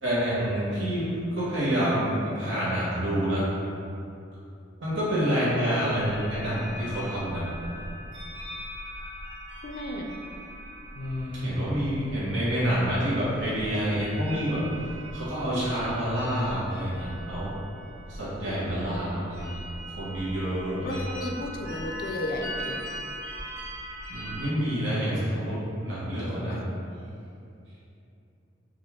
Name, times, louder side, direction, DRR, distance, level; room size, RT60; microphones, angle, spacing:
voice 1, 0.0-3.5 4.8-7.5 10.9-17.6 18.1-19.6 19.9-21.0 24.1-26.6, equal, 80° right, -10 dB, 1.2 m, -28 dB
sound 1, 5.9-24.5, equal, 60° right, 1.4 m, -40 dB
voice 2, 9.6-10.1 20.8-22.8 26.5-26.8, left 1 dB, 50° left, 2 dB, 0.4 m, -34 dB
5.1 x 2.5 x 3.5 m, 2.6 s
head